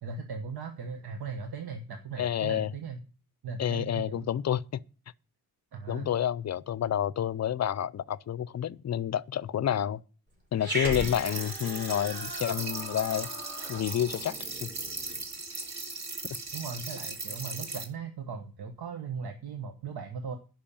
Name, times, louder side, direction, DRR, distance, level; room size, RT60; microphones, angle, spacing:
voice 1, 0.0-3.0 3.4-4.3 5.7-6.1 16.5-20.4, right 5 dB, 80° right, 1.2 m, -38 dB
voice 2, 2.2-2.7 3.6-4.6 5.9-10.0 10.5-13.3 13.7-14.4 14.6-14.7, left 10 dB, 45° left, 0.5 m, -29 dB
Growling, 10.6-15.2, equal, 25° right, 4.7 m, -38 dB
sound 1, 10.9-17.8, right 3 dB, 45° right, 2.3 m, -38 dB
11.0 x 5.5 x 8.6 m
wide cardioid pair, 120°, 38 cm